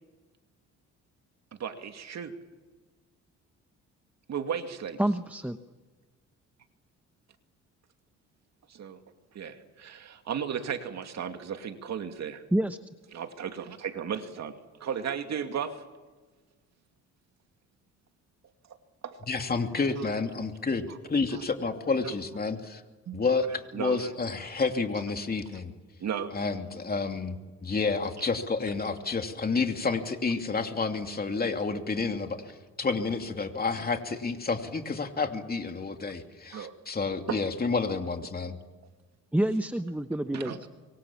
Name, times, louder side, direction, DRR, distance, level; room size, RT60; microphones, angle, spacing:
voice 1, 1.6-2.3 4.3-5.0 8.7-9.0 9.3-12.4 13.1-15.8 19.0-19.2 20.0-20.1 20.9-21.0 21.3-21.4 23.1-23.2 23.7-24.1 24.9-25.0 26.0-26.3 36.5-36.7 37.3-37.4 40.3-40.7, right 7 dB, 60° right, 6 dB, 2.5 m, -35 dB
voice 2, 5.0-5.6 12.5-12.8 39.3-40.7, right 1 dB, 5° right, 9 dB, 1.0 m, -27 dB
voice 3, 19.3-22.8 23.1-25.7 26.3-38.6, left 4 dB, 30° left, 5 dB, 2.8 m, -30 dB
26.0 x 23.5 x 7.3 m, 1.3 s
cardioid pair, 90°, 30 cm